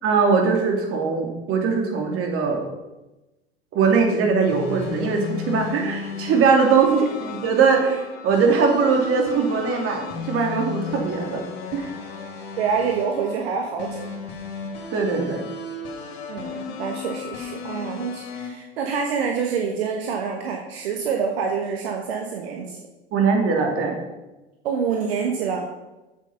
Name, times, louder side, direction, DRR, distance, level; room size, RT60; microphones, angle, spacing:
voice 1, 0.0-2.7 3.7-11.4 11.7-11.9 14.9-15.4 23.1-24.0, right 5 dB, 45° right, 2 dB, 2.7 m, -21 dB
sound 1, 4.5-18.5, left 5 dB, 65° left, 2.6 m, -34 dB
voice 2, 12.6-14.1 16.3-22.8 24.6-25.7, right 6 dB, 70° right, 2 dB, 1.3 m, -26 dB
8.1 x 7.7 x 5.7 m, 1.0 s
hypercardioid pair, 80°, 31 cm